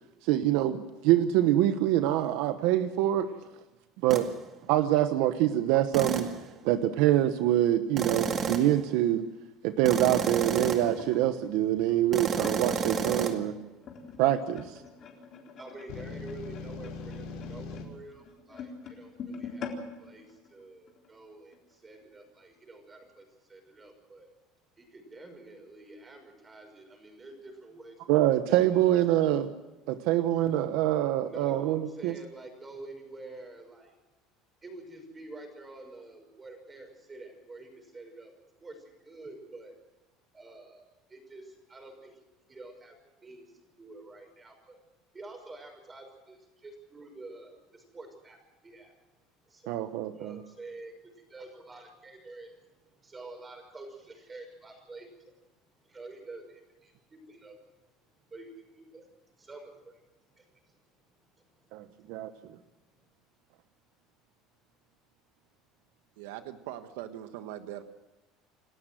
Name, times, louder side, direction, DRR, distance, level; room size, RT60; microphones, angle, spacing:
voice 1, 0.2-3.3 4.0-4.3 4.7-6.3 6.6-9.3 9.6-13.6 14.2-14.8 28.1-29.5 29.9-32.1 49.7-50.4 61.7-62.3, right 13 dB, 75° right, 10 dB, 1.1 m, -25 dB
sound 1, 4.1-4.3 5.9-6.4 8.0-8.8 9.8-11.0 12.1-13.3, right 6 dB, 35° right, 2.1 m, -31 dB
sound 2, 10.3-13.2 13.8-21.1 21.5-21.7 22.0-22.3 23.0-23.1, left 5 dB, 40° left, 3.9 m, -45 dB
voice 2, 13.5-14.5 14.8-24.3 24.8-28.0 31.2-33.9 34.6-39.8 40.3-42.2 42.5-44.8 45.1-48.9 49.5-55.4 55.8-57.6 58.2-60.8 61.2-62.5, right 2 dB, 20° right, 5 dB, 5.9 m, -48 dB
sound 3, 15.9-17.8, left 4 dB, 75° left, 6.3 m, -40 dB
voice 3, 66.2-67.8, right 12 dB, 90° right, 9 dB, 1.2 m, -41 dB
28.5 x 13.0 x 7.7 m, 1.1 s
cardioid pair, 130°, 0 cm